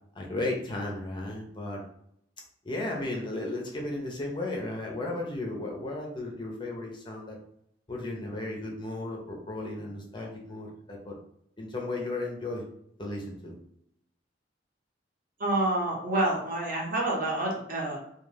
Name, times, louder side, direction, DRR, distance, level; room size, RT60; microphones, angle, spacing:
voice 1, 0.1-1.9 2.6-7.4 7.9-11.1 11.6-12.6 13.0-13.5, left 2 dB, 25° left, -1 dB, 0.5 m, -34 dB
voice 2, 15.4-18.0, right 2 dB, 50° right, -2 dB, 0.9 m, -28 dB
2.3 x 2.3 x 3.2 m, 0.72 s
head